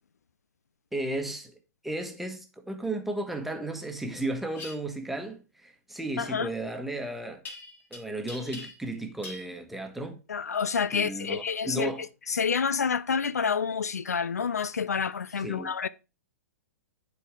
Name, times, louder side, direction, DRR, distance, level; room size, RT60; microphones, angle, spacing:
voice 1, 0.9-1.5 1.8-7.4 7.9-10.2 10.9-12.0 15.4-15.7, right 1 dB, ahead, 1.4 m, -34 dB
sound 1, 4.5-4.8 7.5-8.0 8.3-8.9 9.2-9.5, left 3 dB, 20° left, 2.5 m, -42 dB
voice 2, 6.2-6.5 10.3-15.9, left 6 dB, 70° left, 0.4 m, -28 dB
11.0 x 4.6 x 3.6 m
figure-of-eight pair, 110°, 9 cm